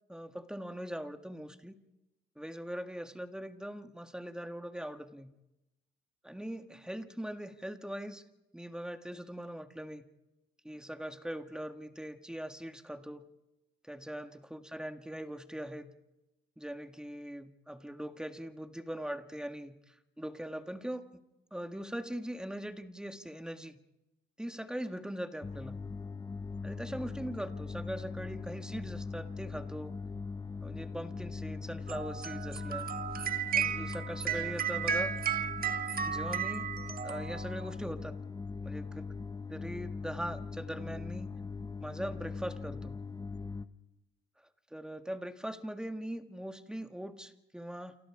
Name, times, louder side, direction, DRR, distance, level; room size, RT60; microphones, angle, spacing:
voice 1, 0.1-1.8 2.4-5.3 6.2-8.2 8.5-10.1 10.6-13.2 13.8-15.9 16.6-21.2 21.5-23.8 24.4-25.8 26.6-30.0 30.6-32.9 33.5-35.2 36.0-36.7 37.0-38.2 38.6-39.1 39.5-41.3 41.8-43.0 44.7-48.0, equal, 5° right, 7 dB, 1.8 m, -41 dB
sound 1, 25.4-43.7, left 4 dB, 20° left, 1.0 m, -41 dB
sound 2, 31.9-37.7, right 8 dB, 50° right, 1.5 m, -34 dB
29.5 x 27.5 x 4.9 m, 0.97 s
cardioid pair, 90°, 20 cm